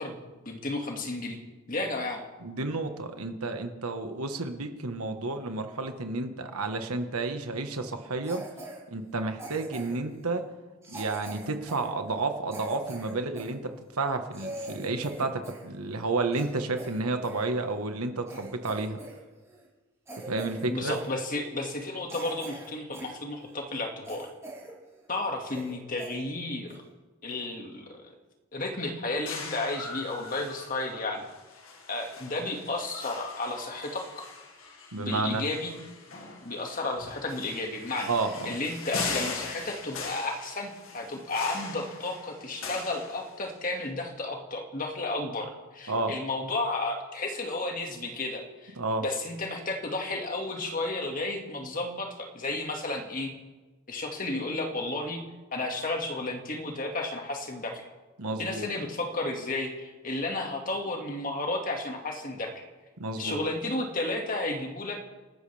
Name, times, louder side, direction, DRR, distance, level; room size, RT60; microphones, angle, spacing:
voice 1, 0.0-1.4 1.7-2.2 20.7-24.3 25.1-26.7 27.2-28.1 28.5-31.2 31.9-34.2 35.0-35.7 36.4-38.1 38.4-48.7 49.0-53.3 53.9-55.2 55.5-57.8 58.4-62.7 63.2-65.0, left 2 dB, 40° left, 2 dB, 2.1 m, -32 dB
voice 2, 2.4-8.4 8.9-10.4 10.9-19.0 20.3-21.0 34.9-35.4 38.1-38.6 45.9-46.1 48.8-49.0 58.2-58.7 63.0-63.4, right 3 dB, 85° right, 6 dB, 1.5 m, -31 dB
Cough, 8.2-8.8 9.4-10.1 10.8-13.5 14.0-14.1 14.3-15.7 16.0-17.4 17.9-18.0 18.3-19.2 19.4-19.7 20.0-20.7 20.9-21.1 21.6-21.7 22.1-23.1 23.5-23.6 24.0-24.7 25.0-25.1 25.4-25.7 26.0-26.1 26.7-26.9, right 1 dB, 15° right, 6.4 m, -42 dB
sound 1, 29.3-43.7, left 4 dB, 65° left, 2.0 m, -40 dB
28.5 x 13.0 x 3.5 m, 1.2 s
head